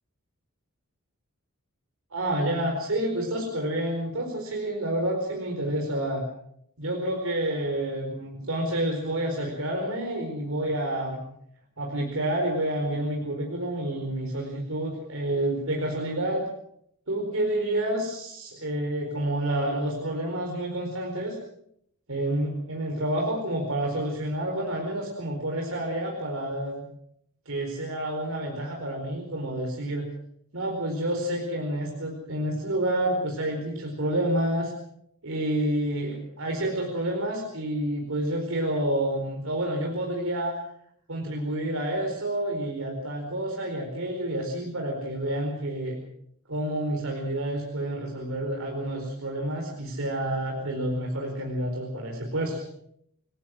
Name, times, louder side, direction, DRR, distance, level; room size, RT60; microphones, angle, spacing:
voice 1, 2.1-6.3 6.8-11.2 11.8-16.4 17.1-21.4 22.1-26.9 27.5-30.1 30.5-34.7 35.2-40.6 41.1-46.0 46.5-52.6, right 1 dB, 65° right, 1 dB, 4.6 m, -29 dB
29.0 x 18.0 x 6.3 m, 0.72 s
head